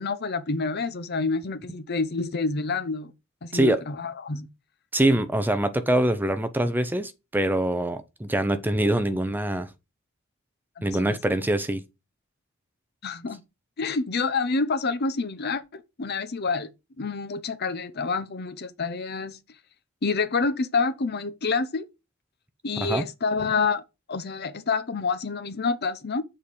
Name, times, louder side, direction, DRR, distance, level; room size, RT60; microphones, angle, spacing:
voice 1, 0.0-3.1 3.4-4.5 10.8-11.2 13.0-13.4 13.8-16.7 17.0-19.4 20.0-21.9 22.6-23.8 24.1-26.2, left 4 dB, 50° left, 0.7 m, -28 dB
voice 2, 4.9-9.7 10.8-11.8 22.8-23.1, right 1 dB, 10° right, 0.5 m, -24 dB
7.3 x 4.3 x 4.9 m
head